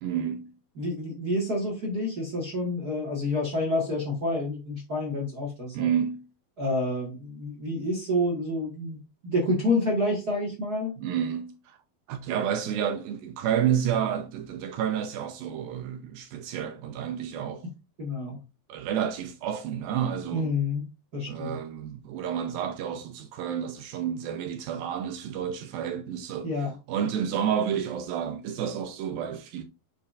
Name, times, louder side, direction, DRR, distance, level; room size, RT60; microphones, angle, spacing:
voice 1, 0.0-0.5 5.7-6.3 11.0-11.8 12.1-17.6 18.7-20.5 21.3-26.5 26.9-29.6, right 9 dB, 80° right, 2.4 m, -30 dB
voice 2, 0.7-5.9 6.6-10.9 18.0-18.4 20.3-20.9 21.1-21.6 26.4-26.7, left 1 dB, 40° right, 1.4 m, -28 dB
6.9 x 6.8 x 2.5 m
omnidirectional pair, 4.4 m